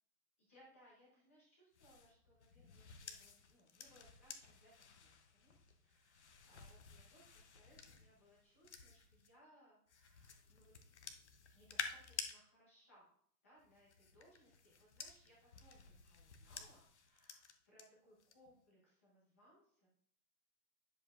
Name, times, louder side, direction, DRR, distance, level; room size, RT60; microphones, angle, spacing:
voice 1, 0.4-10.7 11.5-13.1 13.4-19.9, equal, 10° left, -5 dB, 0.8 m, -68 dB
sound 1, 1.7-9.3 9.9-12.3 13.6-17.8 18.2-18.6, left 6 dB, 45° left, 0.8 m, -52 dB
10.0 x 6.9 x 2.5 m, 0.62 s
hypercardioid pair, 180°, 47 cm